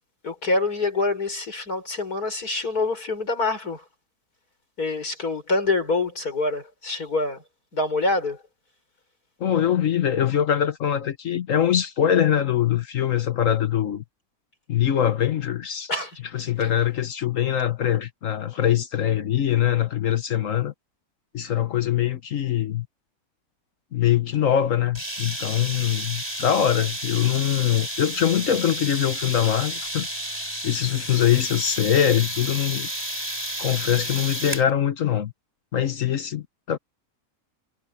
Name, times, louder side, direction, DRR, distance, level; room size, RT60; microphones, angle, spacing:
voice 1, 0.2-3.8 4.8-7.4 7.7-8.4 15.9-16.2 16.6-16.7, left 3 dB, 80° left, 6.1 m, -26 dB
voice 2, 9.4-14.0 14.7-15.9 16.3-20.7 21.3-22.9 23.9-30.1 30.6-32.9 33.6-35.3 35.7-36.8, left 10 dB, 60° left, 1.3 m, -23 dB
sound 1, 24.9-34.7, right 1 dB, 15° right, 7.0 m, -32 dB
omnidirectional pair, 1.6 m